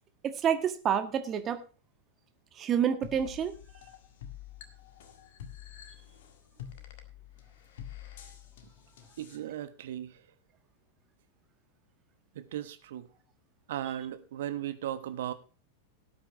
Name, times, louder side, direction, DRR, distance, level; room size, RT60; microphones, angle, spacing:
voice 1, 0.2-1.6 2.5-3.6, right 8 dB, 30° right, 1.6 m, -28 dB
sound 1, 3.0-9.4, left 10 dB, 55° left, 1.8 m, -48 dB
voice 2, 9.2-10.2 12.3-13.1 13.7-15.3, right 11 dB, 55° right, 1.2 m, -36 dB
18.0 x 8.8 x 3.0 m
figure-of-eight pair, 90°, 0 cm